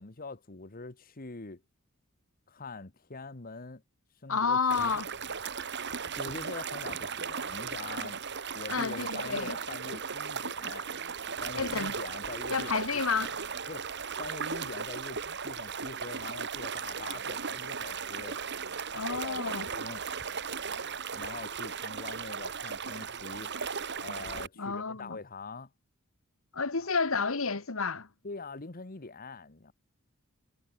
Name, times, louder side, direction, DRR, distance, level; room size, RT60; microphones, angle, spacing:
voice 1, 0.0-1.6 2.5-3.8 4.2-5.0 6.2-8.2 8.5-10.9 11.4-13.3 13.7-13.9 14.2-18.4 18.9-20.0 21.1-23.5 24.0-25.7 26.8-26.9 28.2-29.7, left 3 dB, 45° left, 1.3 m, -44 dB
voice 2, 4.3-5.1 8.7-9.6 11.5-12.0 12.5-13.3 18.9-19.7 24.6-25.2 26.5-28.1, left 5 dB, 70° left, 1.6 m, -30 dB
sound 1, 4.7-24.5, right 6 dB, 55° right, 2.9 m, -36 dB
head